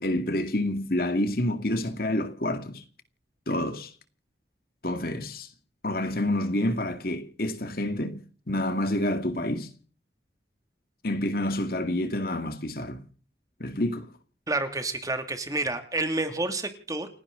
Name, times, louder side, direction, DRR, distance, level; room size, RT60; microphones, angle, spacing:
voice 1, 0.0-2.8 3.5-3.9 4.8-5.5 5.8-9.7 11.0-13.0 13.6-14.1, left 1 dB, 55° left, 2.2 m, -28 dB
voice 2, 14.5-17.1, right 2 dB, 20° right, 2.6 m, -29 dB
30.0 x 11.0 x 3.9 m
head